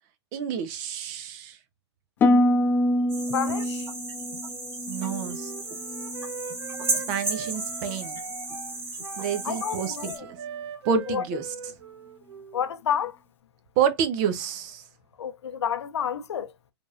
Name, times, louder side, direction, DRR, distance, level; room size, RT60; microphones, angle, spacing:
voice 1, 0.3-1.6 4.9-5.5 6.9-8.2 9.2-10.1 10.8-11.5 13.8-14.8, right 7 dB, 40° right, 1.1 m, -28 dB
Harp, 2.2-6.3 6.6-7.2 7.7-8.0, left 1 dB, 15° left, 0.4 m, -26 dB
sound 1, 3.1-10.2, right 2 dB, 15° right, 2.5 m, -34 dB
voice 2, 3.3-3.9 9.4-10.2 11.1-11.2 12.5-13.2 15.2-16.5, left 8 dB, 75° left, 0.8 m, -29 dB
Wind instrument woodwind instrument, 5.2-12.6, right 6 dB, 70° right, 1.2 m, -41 dB
5.0 x 3.7 x 2.7 m
hypercardioid pair, 130°, 15 cm